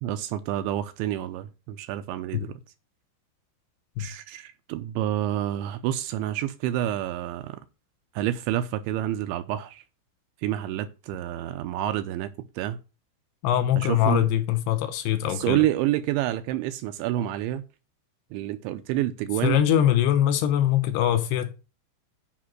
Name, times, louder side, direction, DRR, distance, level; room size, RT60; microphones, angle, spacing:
voice 1, 0.0-2.6 4.0-7.6 8.2-9.8 10.4-12.8 13.8-14.3 15.3-17.6 18.3-19.6, right 13 dB, 85° right, 2.7 m, -28 dB
voice 2, 13.4-15.7 19.4-21.5, left 11 dB, 80° left, 2.4 m, -23 dB
8.5 x 5.2 x 6.0 m
omnidirectional pair, 5.7 m